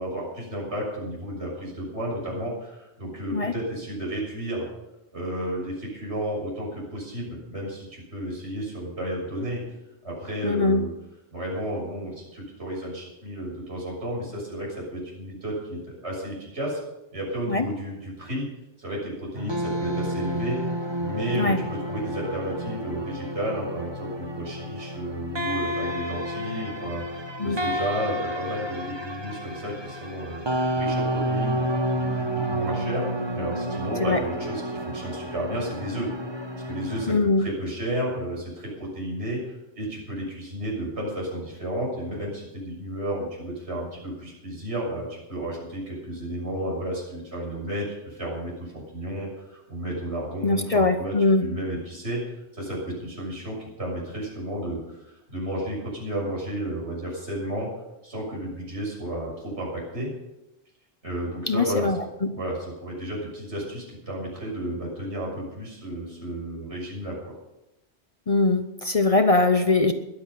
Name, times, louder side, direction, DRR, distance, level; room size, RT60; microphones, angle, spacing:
voice 1, 0.0-4.7 5.1-9.6 10.0-10.9 11.3-16.8 17.1-18.5 18.8-20.6 21.0-36.1 36.6-52.2 52.5-57.7 58.0-60.1 61.0-61.9 62.3-67.4, right 1 dB, 75° right, -3 dB, 7.0 m, -32 dB
voice 2, 10.4-10.8 17.5-17.7 21.3-21.6 27.4-27.6 34.0-34.2 37.1-37.4 50.4-51.5 61.5-62.3 68.3-69.9, left 3 dB, 35° left, 7 dB, 0.8 m, -22 dB
sound 1, 19.4-37.2, right 1 dB, 25° right, 1.2 m, -30 dB
21.5 x 8.0 x 5.6 m, 0.93 s
omnidirectional pair, 1.1 m